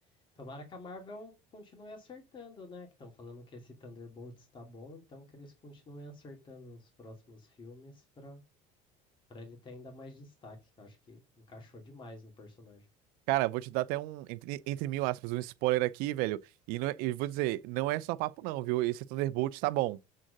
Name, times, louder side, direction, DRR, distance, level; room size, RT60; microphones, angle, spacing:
voice 1, 0.4-8.4 9.3-11.2 11.5-12.9, left 2 dB, 30° left, 2.4 m, -49 dB
voice 2, 13.3-16.4 16.7-20.0, right 17 dB, 75° right, 0.6 m, -31 dB
7.7 x 3.7 x 6.5 m
cardioid pair, 120°, 15 cm